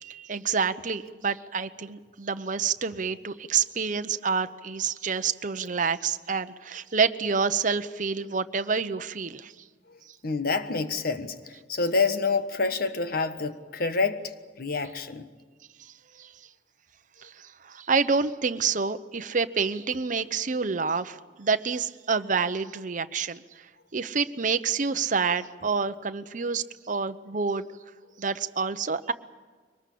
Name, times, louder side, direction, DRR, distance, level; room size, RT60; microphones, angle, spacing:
voice 1, 0.0-9.5 16.2-16.3 17.2-23.4 23.9-27.7 28.2-29.1, right 5 dB, 45° right, 0.9 m, -28 dB
voice 2, 10.2-15.3, left 4 dB, 55° left, 1.4 m, -28 dB
23.0 x 20.0 x 8.5 m
head